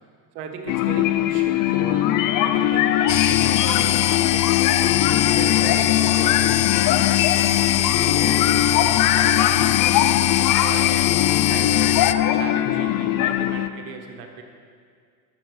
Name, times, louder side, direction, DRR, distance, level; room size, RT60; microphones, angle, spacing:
voice 1, 0.3-9.5 10.1-14.4, right 6 dB, 70° right, 4 dB, 1.4 m, -37 dB
sound 1, 0.7-13.7, left 12 dB, 40° left, 0.6 m, -21 dB
sound 2, 3.1-12.1, left 14 dB, 80° left, 0.6 m, -22 dB
12.0 x 7.3 x 4.8 m, 2.1 s
hypercardioid pair, 85°, 49 cm